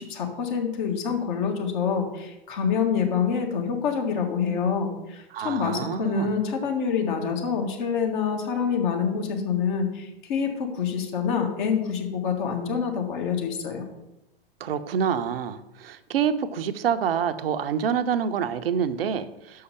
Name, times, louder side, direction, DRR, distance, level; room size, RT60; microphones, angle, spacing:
voice 1, 0.0-13.9, left 6 dB, 50° left, 3 dB, 1.8 m, -26 dB
voice 2, 5.3-6.4 14.6-19.6, right 7 dB, 65° right, 10 dB, 0.7 m, -27 dB
6.4 x 5.6 x 7.0 m, 0.93 s
hypercardioid pair, 105°, 31 cm